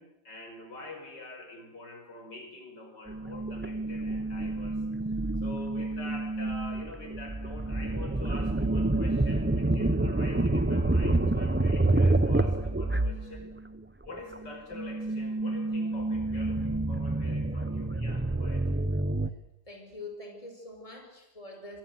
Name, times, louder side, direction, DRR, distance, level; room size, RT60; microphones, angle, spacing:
voice 1, 0.0-4.8 5.1-13.5 14.0-18.7, left 2 dB, 75° left, 4 dB, 5.9 m, -46 dB
sound 1, 3.1-13.8 14.1-19.3, right 2 dB, 15° right, 0.4 m, -28 dB
voice 2, 19.7-21.8, left 2 dB, 20° left, 3 dB, 5.4 m, -44 dB
27.0 x 23.5 x 8.1 m, 0.92 s
omnidirectional pair, 1.9 m